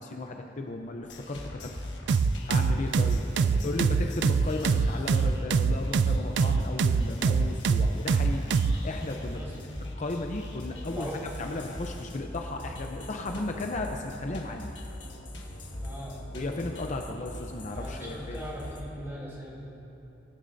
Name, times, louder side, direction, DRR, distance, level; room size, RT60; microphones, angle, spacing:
voice 1, 0.0-1.7 2.5-3.2 3.6-8.5 8.8-9.5 10.0-11.1 11.4-14.7 16.3-18.4, left 2 dB, 40° left, 3 dB, 0.6 m, -35 dB
sound 1, 1.0-18.8, left 1 dB, 70° left, 1.4 m, -40 dB
sound 2, 2.1-8.8, right 5 dB, 65° right, 0.3 m, -24 dB
voice 2, 15.8-16.2 17.7-19.7, equal, 15° right, -5 dB, 2.8 m, -40 dB
20.5 x 9.7 x 2.7 m, 3.0 s
head